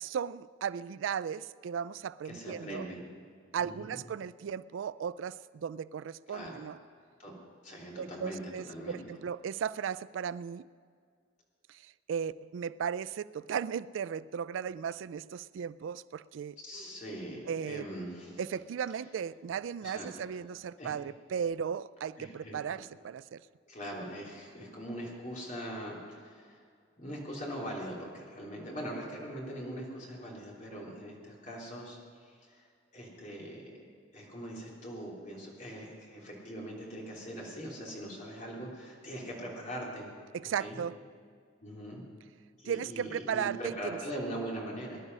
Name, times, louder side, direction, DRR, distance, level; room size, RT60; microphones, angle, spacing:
voice 1, 0.0-2.9 3.5-6.8 8.0-10.7 11.7-16.6 17.5-17.9 18.4-23.4 40.3-40.9 42.7-44.0, right 7 dB, 80° right, 18 dB, 0.3 m, -36 dB
voice 2, 2.3-3.0 3.6-4.0 6.3-6.6 7.2-7.3 7.6-9.0 16.6-18.4 19.8-20.1 20.8-21.0 22.2-22.6 23.7-26.6 27.0-32.6 32.9-33.8 34.1-40.1 40.6-40.8 41.6-42.0 42.6-45.0, equal, 40° left, -3 dB, 3.3 m, -41 dB
20.0 x 11.0 x 5.5 m, 2.1 s
head